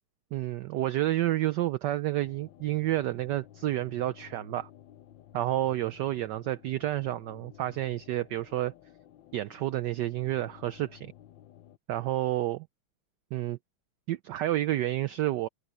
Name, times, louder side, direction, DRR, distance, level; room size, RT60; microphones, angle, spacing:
voice 1, 0.3-4.7 5.3-8.7 9.3-11.1 11.9-12.7 13.3-13.6 14.1-15.5, right 14 dB, 75° right, 1.0 m, -30 dB
sound 1, 2.2-11.8, left 11 dB, 70° left, 1.4 m, -54 dB
omnidirectional pair, 2.3 m